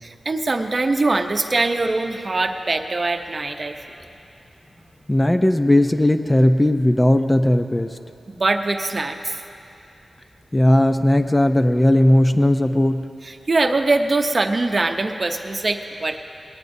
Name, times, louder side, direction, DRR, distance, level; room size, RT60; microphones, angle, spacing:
voice 1, 0.0-3.8 8.3-9.4 13.2-16.2, right 3 dB, 40° right, 6 dB, 0.8 m, -22 dB
voice 2, 5.1-7.9 10.5-13.0, left 1 dB, 20° left, 7 dB, 0.5 m, -17 dB
20.0 x 17.5 x 2.7 m, 2.6 s
wide cardioid pair, 85°, 0 cm